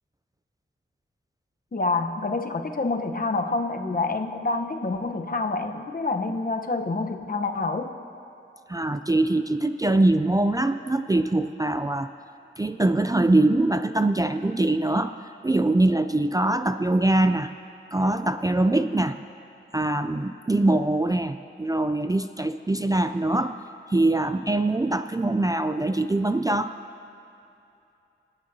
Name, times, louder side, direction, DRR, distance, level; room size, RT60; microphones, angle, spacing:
voice 1, 1.7-7.9, left 3 dB, 45° left, 5 dB, 0.9 m, -27 dB
voice 2, 8.7-12.1 12.6-15.2 15.4-17.5 17.9-19.2 19.7-23.6 23.9-26.7, right 2 dB, 15° right, 9 dB, 0.4 m, -23 dB
26.5 x 9.2 x 2.7 m, 2.7 s
cardioid pair, 55°, 21 cm